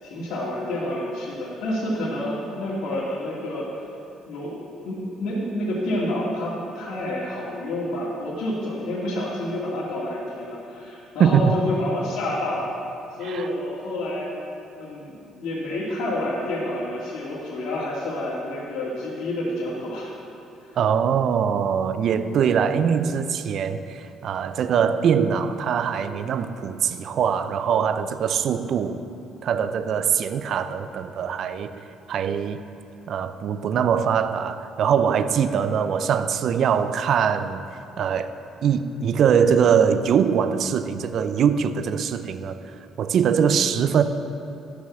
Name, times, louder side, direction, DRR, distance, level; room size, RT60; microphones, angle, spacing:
voice 1, 0.0-3.8 4.3-12.7 13.2-14.3 14.8-20.1 20.6-20.7 43.3-43.6, left 1 dB, 75° left, -9 dB, 2.5 m, -29 dB
voice 2, 11.2-11.6 13.2-13.5 20.8-29.0 29.4-32.6 33.1-37.7 38.0-38.3 38.6-42.6 43.0-44.0, right 7 dB, 60° right, 11 dB, 0.6 m, -22 dB
11.5 x 6.4 x 7.1 m, 2.8 s
supercardioid pair, 85°, 0 cm